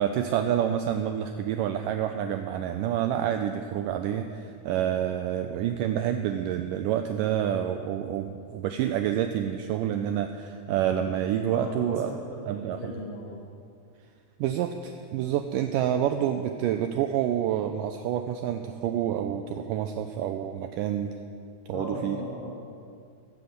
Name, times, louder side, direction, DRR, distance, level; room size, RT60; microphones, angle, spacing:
voice 1, 0.0-12.1 12.5-12.9 14.4-21.2 21.7-22.2, right 10 dB, 90° right, 6 dB, 1.9 m, -28 dB
voice 2, 11.5-13.4 21.7-22.5, left 1 dB, 45° left, -5 dB, 4.0 m, -37 dB
16.5 x 7.8 x 7.8 m, 2.3 s
omnidirectional pair, 4.4 m